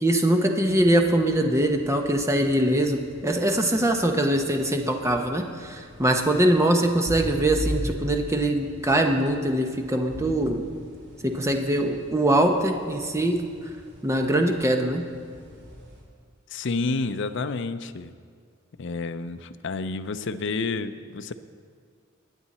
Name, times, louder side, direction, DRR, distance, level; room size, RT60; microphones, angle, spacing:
voice 1, 0.0-10.7 11.2-13.4 14.0-15.0, right 1 dB, 15° right, 3 dB, 0.9 m, -22 dB
sound 1, 0.6-16.0, equal, 55° right, 2.9 m, -40 dB
voice 2, 16.5-18.1 18.8-21.3, left 3 dB, 60° left, 10 dB, 0.5 m, -29 dB
22.0 x 8.9 x 4.2 m, 2.1 s
head